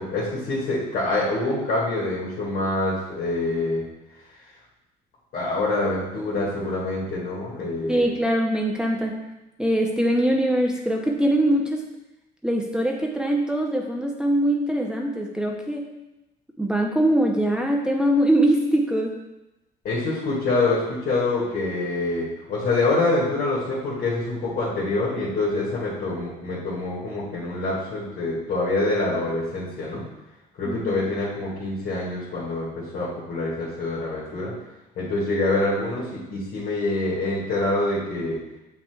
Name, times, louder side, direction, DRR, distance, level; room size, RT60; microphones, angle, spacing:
voice 1, 0.0-3.8 5.3-8.1 19.8-30.0 30.6-34.5 35.0-38.4, left 2 dB, 65° left, -8 dB, 2.1 m, -26 dB
voice 2, 7.9-9.2 9.6-11.9 12.4-15.9 16.6-19.2 30.7-31.0, right 1 dB, 5° right, 0 dB, 0.7 m, -22 dB
7.8 x 5.8 x 2.4 m, 0.95 s
cardioid pair, 110°, 17 cm